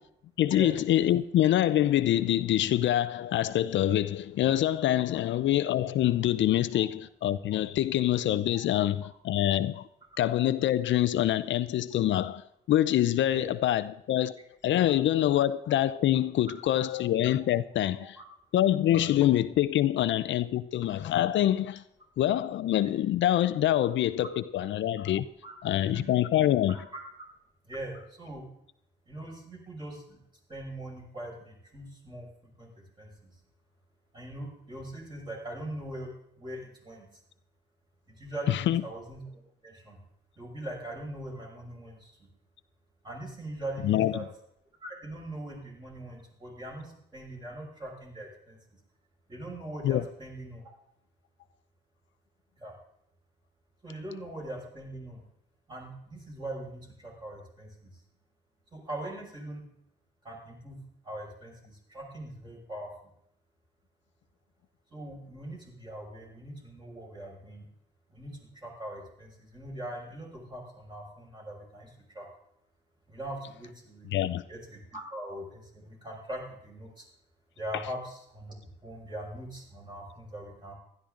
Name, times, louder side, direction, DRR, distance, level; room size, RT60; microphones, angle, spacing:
voice 1, 0.4-9.9 10.2-14.3 14.6-18.2 18.5-21.8 22.2-25.2 25.6-26.8 38.5-38.8 43.8-44.2 49.8-50.0 74.1-74.4, left 12 dB, 70° left, 0.6 m, -25 dB
voice 2, 26.7-27.3 27.6-28.4 29.1-30.2 30.5-32.3 32.6-32.7 33.0-33.3 34.1-36.1 36.4-37.1 38.1-39.2 39.6-40.0 40.4-42.2 43.0-44.2 44.8-48.6 49.3-50.7 52.6-52.7 53.8-55.2 55.7-57.9 58.7-59.6 60.2-62.9 64.9-67.7 68.1-72.3 73.1-74.1 74.5-77.1 77.6-80.7, right 1 dB, 20° right, 5.9 m, -41 dB
15.5 x 12.0 x 3.8 m
cardioid pair, 90°, 20 cm